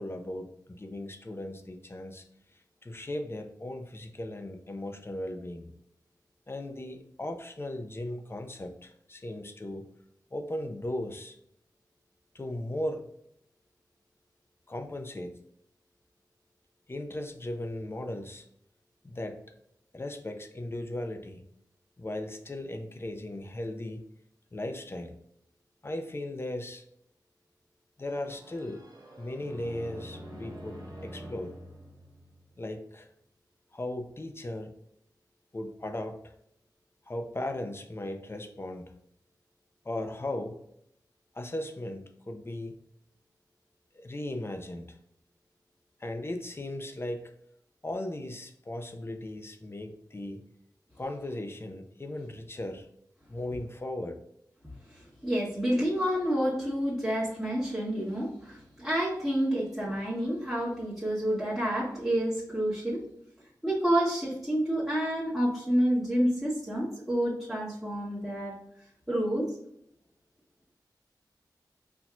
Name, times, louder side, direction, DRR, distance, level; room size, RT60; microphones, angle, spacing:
voice 1, 0.0-2.2 2.8-5.7 6.5-9.8 10.3-11.4 12.3-13.1 14.7-15.4 16.9-18.4 19.0-19.4 19.9-21.4 22.0-24.0 24.5-25.1 25.8-26.8 28.0-28.8 29.2-31.6 32.6-33.1 33.7-34.7 35.5-36.3 37.1-38.9 39.8-40.6 41.3-42.8 43.9-44.9 46.0-47.3 47.8-50.4 51.0-52.9 53.3-54.2, left 1 dB, 35° left, 5 dB, 0.6 m, -37 dB
sound 1, 28.0-32.8, equal, 70° right, 1.1 m, -46 dB
voice 2, 54.9-63.0 63.6-68.6 69.1-69.5, equal, 5° right, -8 dB, 1.4 m, -29 dB
4.2 x 2.8 x 2.4 m, 0.74 s
cardioid pair, 55°, 7 cm